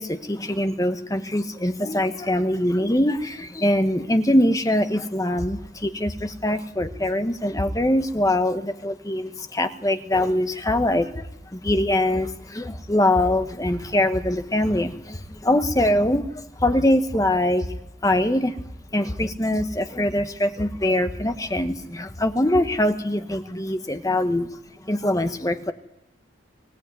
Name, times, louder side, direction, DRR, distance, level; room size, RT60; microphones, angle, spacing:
voice 1, 0.0-17.6 18.0-18.6 18.9-24.5 24.8-25.7, left 1 dB, 15° left, 8 dB, 1.0 m, -23 dB
sound 1, 5.4-8.2 10.6-22.9, equal, 50° left, 4.8 m, -37 dB
24.0 x 15.0 x 9.4 m, 0.84 s
head